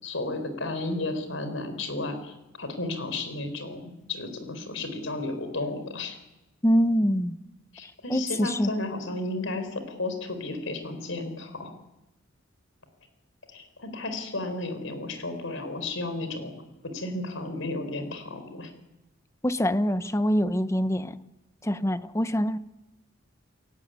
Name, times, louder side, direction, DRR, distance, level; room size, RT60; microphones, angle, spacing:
voice 1, 0.0-6.2 7.7-11.7 13.5-16.5 16.8-18.7, left 2 dB, 75° left, 8 dB, 5.0 m, -33 dB
voice 2, 6.6-7.4 8.1-8.7 19.4-21.2 21.6-22.6, equal, 15° left, 12 dB, 0.9 m, -24 dB
28.5 x 17.5 x 9.6 m, 0.98 s
head